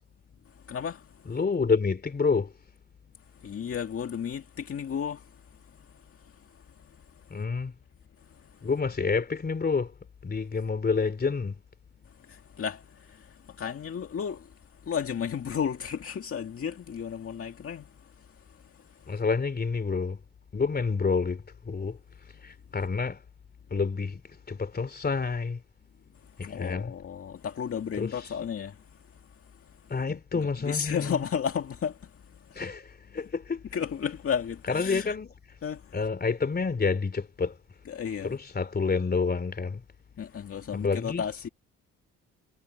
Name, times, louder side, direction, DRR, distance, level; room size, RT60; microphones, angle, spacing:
voice 1, 0.7-1.0 3.4-5.2 12.3-12.8 13.1-13.2 13.6-14.4 14.9-17.9 26.4-28.7 30.7-32.0 33.7-35.1 35.6-35.8 37.9-38.4 40.2-41.5, left 7 dB, 50° left, 2.0 m, -32 dB
voice 2, 1.2-2.5 7.3-7.7 8.6-9.9 10.2-11.6 19.1-20.2 20.5-22.0 22.4-23.2 23.7-25.6 26.4-26.9 28.0-28.3 29.9-31.2 32.5-33.6 34.7-35.3 35.9-37.6 38.2-39.8 40.7-41.3, left 4 dB, 30° left, 3.4 m, -28 dB
cardioid pair, 90°, 30 cm